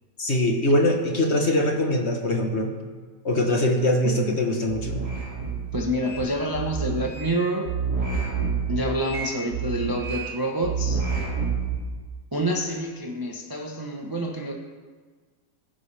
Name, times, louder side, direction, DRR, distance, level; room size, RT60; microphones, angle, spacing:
voice 1, 0.2-2.7 3.2-5.0, left 1 dB, 40° left, 2 dB, 1.4 m, -22 dB
voice 2, 4.0-4.4 5.7-7.7 8.7-11.0 12.3-14.5, right 1 dB, 15° right, 1 dB, 0.8 m, -27 dB
sound 1, 4.7-6.2 6.5-7.3 7.7-10.3 10.6-11.8, right 6 dB, 65° right, 3.2 m, -28 dB
21.0 x 9.7 x 3.4 m, 1.5 s
omnidirectional pair, 1.9 m